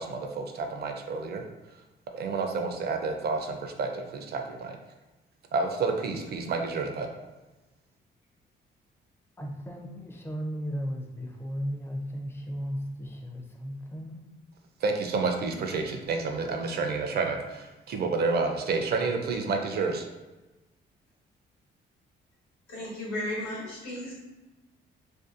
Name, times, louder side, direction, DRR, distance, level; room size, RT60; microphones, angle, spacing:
voice 1, 0.0-1.4 2.1-4.8 5.5-7.1 14.8-20.1, right 4 dB, 55° right, 4 dB, 0.4 m, -29 dB
voice 2, 9.4-14.3, equal, 10° left, 1 dB, 0.4 m, -35 dB
voice 3, 22.7-24.1, left 1 dB, 90° left, -6 dB, 1.1 m, -34 dB
2.6 x 2.2 x 2.4 m, 1.1 s
cardioid pair, 90°, 20 cm